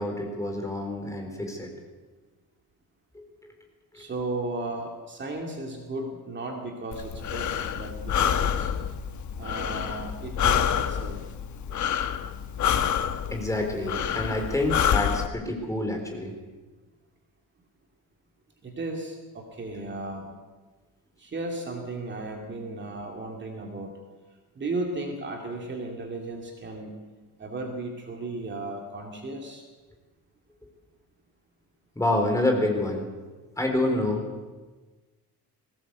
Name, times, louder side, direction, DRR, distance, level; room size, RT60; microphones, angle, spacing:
voice 1, 0.0-1.7 3.9-4.1 13.3-16.3 32.0-33.1 33.6-34.2, left 1 dB, 10° left, 3 dB, 4.0 m, -27 dB
voice 2, 3.9-8.7 9.4-11.2 11.7-11.8 18.6-20.3 21.2-23.9 24.5-27.0 27.4-29.7, right 2 dB, 30° right, 1 dB, 2.5 m, -35 dB
Breathing, 6.9-15.3, left 9 dB, 50° left, 1.1 m, -27 dB
21.0 x 17.5 x 8.1 m, 1.3 s
cardioid pair, 160°, 38 cm